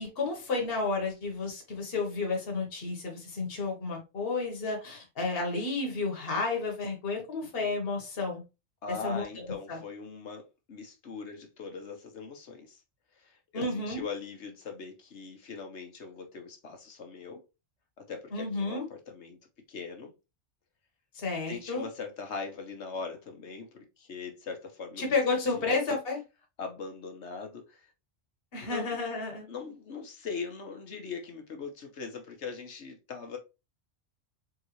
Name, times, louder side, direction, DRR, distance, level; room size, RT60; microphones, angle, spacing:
voice 1, 0.0-8.4 8.9-9.8 13.5-14.0 18.3-18.9 21.1-21.9 25.0-26.2 28.5-29.5, left 3 dB, 60° left, 1.5 m, -31 dB
voice 2, 8.8-12.8 13.2-17.4 18.1-19.4 19.7-20.1 21.5-25.7 26.6-27.9 28.6-29.0 29.5-33.4, left 5 dB, 85° left, 1.4 m, -41 dB
3.8 x 3.8 x 3.1 m
omnidirectional pair, 1.2 m